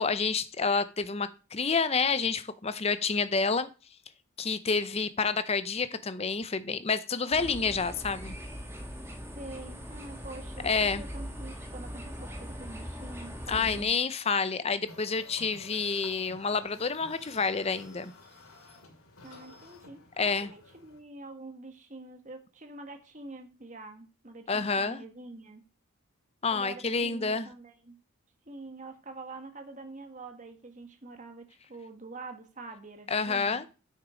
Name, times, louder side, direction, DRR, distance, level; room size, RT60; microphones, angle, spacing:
voice 1, 0.0-3.7 4.4-8.3 10.6-11.0 13.5-18.1 20.2-20.5 24.5-25.0 26.4-27.5 33.1-33.7, left 4 dB, 30° left, 0.6 m, -29 dB
sound 1, 7.3-13.8, equal, 10° right, 1.5 m, -41 dB
voice 2, 9.3-13.9 19.2-25.6 26.5-28.0 28.5-33.7, right 2 dB, 35° right, 1.4 m, -46 dB
sound 2, 14.9-21.0, left 3 dB, 75° left, 2.5 m, -52 dB
8.5 x 6.5 x 5.0 m
head